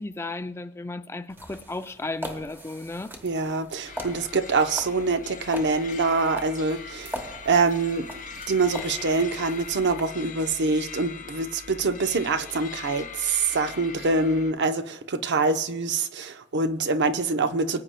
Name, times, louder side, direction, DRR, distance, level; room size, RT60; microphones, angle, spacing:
voice 1, 0.0-3.1, left 2 dB, 10° left, 0.4 m, -34 dB
sound 1, 1.3-10.0, equal, 10° right, 1.1 m, -41 dB
voice 2, 3.2-8.1 8.5-17.8, right 3 dB, 55° right, 0.7 m, -25 dB
sound 2, 3.8-14.5, left 6 dB, 40° left, 0.8 m, -41 dB
24.0 x 8.8 x 2.2 m
head